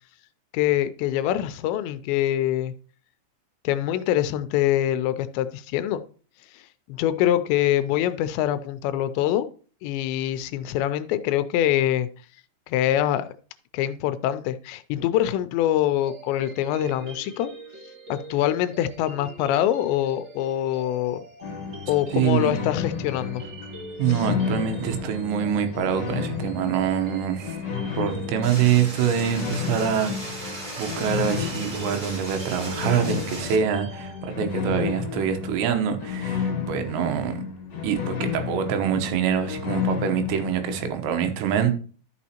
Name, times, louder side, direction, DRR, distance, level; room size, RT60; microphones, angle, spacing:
voice 1, 0.5-2.7 3.6-6.0 6.5-6.6 6.9-9.5 9.8-12.1 12.7-13.3 13.7-17.5 18.1-21.2 21.9-23.5 24.2-24.3, left 12 dB, 85° left, 12 dB, 2.8 m, -24 dB
sound 1, 16.0-34.3, right 2 dB, 45° right, 1.5 m, -43 dB
sound 2, 21.4-40.9, left 7 dB, 60° left, 1.8 m, -32 dB
voice 2, 22.1-22.5 24.0-27.6 27.9-37.4 37.8-41.7, right 8 dB, 80° right, 7 dB, 3.2 m, -25 dB
sound 3, 28.4-33.6, right 1 dB, 25° right, 2.5 m, -37 dB
12.5 x 6.2 x 2.9 m, 0.40 s
omnidirectional pair, 5.1 m